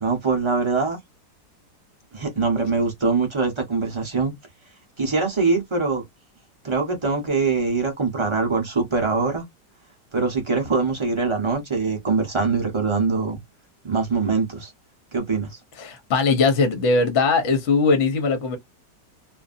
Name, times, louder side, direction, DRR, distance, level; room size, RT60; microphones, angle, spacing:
voice 1, 0.0-1.0 2.1-4.3 5.0-6.0 6.6-9.4 10.1-13.4 13.8-14.7 15.1-15.6, right 4 dB, 30° right, 0.5 m, -23 dB
voice 2, 15.8-18.6, left 4 dB, 55° left, 0.9 m, -20 dB
2.6 x 2.5 x 2.5 m
omnidirectional pair, 1.9 m